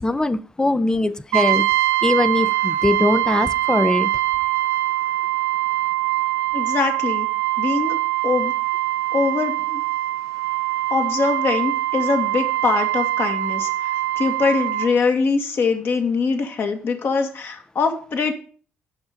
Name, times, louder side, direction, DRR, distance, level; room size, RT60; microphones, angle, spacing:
voice 1, 0.0-1.7 2.0-4.1, left 2 dB, 15° left, 0.6 m, -21 dB
Brass instrument, 1.3-14.9, right 17 dB, 90° right, 0.5 m, -23 dB
voice 2, 6.5-7.3 7.6-8.0 8.2-8.5 9.1-9.8 10.9-18.3, left 4 dB, 55° left, 1.8 m, -23 dB
7.2 x 5.6 x 6.5 m
supercardioid pair, 70°, 5 cm